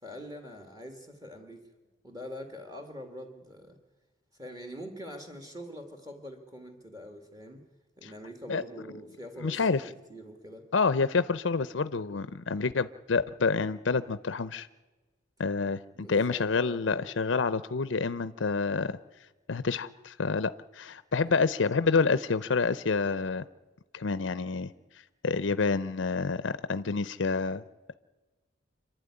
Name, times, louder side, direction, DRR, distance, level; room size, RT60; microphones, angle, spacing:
voice 1, 0.0-1.7 2.0-3.8 4.4-7.6 8.0-10.6 15.9-17.0 21.2-21.3, equal, 20° right, 5 dB, 2.0 m, -44 dB
voice 2, 9.4-9.8 10.7-14.7 15.4-18.9 19.5-23.4 23.9-24.7 25.2-27.6, left 4 dB, 75° left, 15 dB, 0.6 m, -28 dB
26.5 x 12.0 x 9.8 m, 1.2 s
head